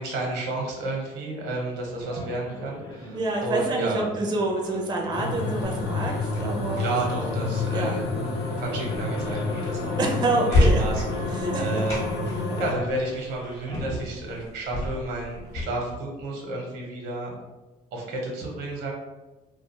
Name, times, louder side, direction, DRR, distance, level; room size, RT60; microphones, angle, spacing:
voice 1, 0.0-4.0 6.8-8.1 8.6-10.0 10.5-17.3 17.9-18.9, right 2 dB, 80° right, -1 dB, 0.9 m, -31 dB
Male speech man speaking, 2.0-14.0, equal, 25° left, 0.5 m, -43 dB
voice 2, 3.1-6.9 7.7-8.0 10.0-10.8 11.4-11.8, right 2 dB, 25° right, 0 dB, 0.4 m, -27 dB
sound 1, 5.1-12.7, left 3 dB, 75° left, 0.6 m, -29 dB
sound 2, 5.6-15.6, left 2 dB, 45° left, 1.0 m, -30 dB
2.4 x 2.3 x 2.8 m, 1.1 s
cardioid pair, 110°, 17 cm